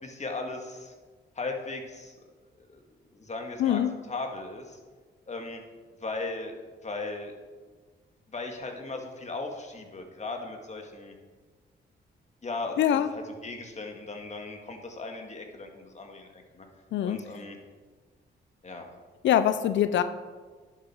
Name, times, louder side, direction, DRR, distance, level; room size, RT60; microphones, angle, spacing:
voice 1, 0.0-0.9 1.4-2.2 2.7-2.8 3.1-3.8 4.1-4.8 5.3-5.6 6.0-6.6 6.8-7.4 8.3-11.1 12.4-16.7 17.0-17.6 18.6-18.9, left 3 dB, 40° left, 3 dB, 1.9 m, -37 dB
voice 2, 3.6-3.9 12.8-13.1 16.9-17.2 19.2-20.0, left 10 dB, 85° left, 11 dB, 0.5 m, -23 dB
10.5 x 7.5 x 4.4 m, 1.4 s
cardioid pair, 70°, 19 cm